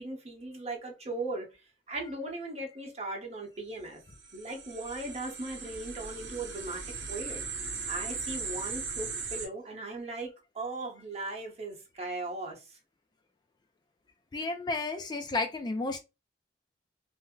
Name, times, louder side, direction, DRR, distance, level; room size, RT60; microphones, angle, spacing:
voice 1, 0.0-1.5 1.9-4.0 4.3-7.4 7.9-12.8, right 2 dB, 35° right, 0.9 m, -38 dB
sound 1, 4.1-9.5, right 5 dB, 65° right, 0.8 m, -38 dB
voice 2, 14.3-16.0, left 3 dB, 25° left, 0.3 m, -32 dB
2.6 x 2.0 x 3.6 m
head